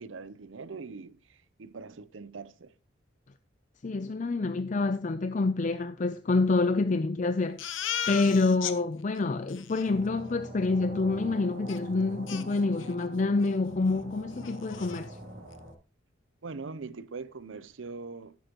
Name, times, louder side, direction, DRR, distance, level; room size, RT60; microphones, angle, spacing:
voice 1, 0.0-2.7 16.4-18.4, right 4 dB, 85° right, 0.6 m, -42 dB
voice 2, 3.8-7.7 8.1-15.2, left 3 dB, 40° left, 0.5 m, -27 dB
Crying sobbing, 7.6-8.8 9.2-9.3 9.5-9.9 11.7-11.8 12.3-13.1 13.4-13.6 13.9-14.0 14.4-15.0, left 9 dB, 90° left, 1.0 m, -36 dB
sound 1, 9.8-15.7, right 1 dB, 60° right, 3.1 m, -43 dB
11.5 x 10.5 x 3.0 m
head